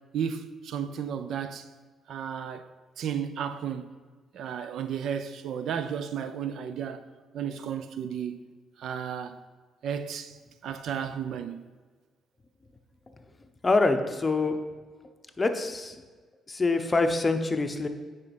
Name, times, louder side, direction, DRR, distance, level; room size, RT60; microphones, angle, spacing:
voice 1, 0.1-1.7 2.1-2.7 3.0-3.9 4.3-7.0 7.3-8.4 8.8-9.4 9.8-10.4 10.6-11.6, right 8 dB, 70° right, 0.5 m, -33 dB
voice 2, 13.6-14.6 15.4-16.0 16.5-17.9, left 3 dB, 25° left, 0.8 m, -25 dB
8.5 x 5.2 x 5.3 m
cardioid pair, 90°, 0 cm